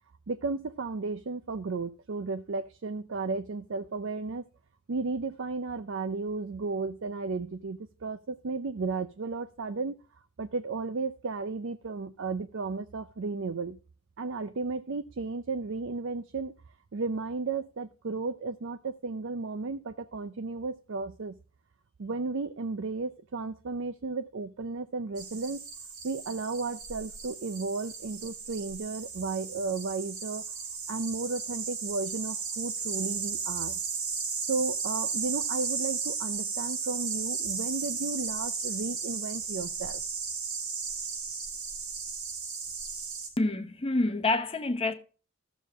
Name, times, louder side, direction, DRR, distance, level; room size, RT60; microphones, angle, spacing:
voice 1, 0.3-4.4 4.9-10.0 10.4-13.8 14.2-16.5 16.9-21.4 22.0-25.6 26.0-30.4 30.9-33.8 34.5-40.0, right 3 dB, 60° right, 0.5 m, -34 dB
sound 1, 25.2-43.3, right 5 dB, 90° right, 4.9 m, -35 dB
voice 2, 43.4-44.9, left 2 dB, 25° left, 0.9 m, -27 dB
14.0 x 7.1 x 3.5 m
head